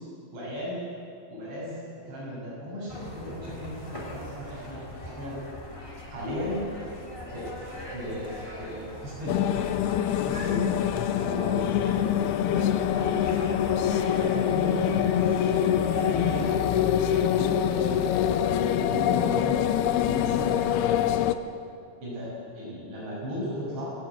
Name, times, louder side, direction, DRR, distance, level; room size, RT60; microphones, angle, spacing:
voice 1, 0.3-0.8 1.3-1.8 2.0-5.4 6.1-6.7 7.3-7.5 7.9-9.4 10.3-10.7 11.2-13.2 14.2-15.0 15.4-16.8 17.0-18.4 18.7-19.6 20.1-21.0 22.0-23.9, equal, 80° right, -9 dB, 9.2 m, -35 dB
sound 1, 2.9-16.7, left 1 dB, 10° left, 2.4 m, -41 dB
sound 2, 9.3-21.4, left 10 dB, 80° left, 2.4 m, -25 dB
20.0 x 16.0 x 8.6 m, 2.5 s
omnidirectional pair, 5.0 m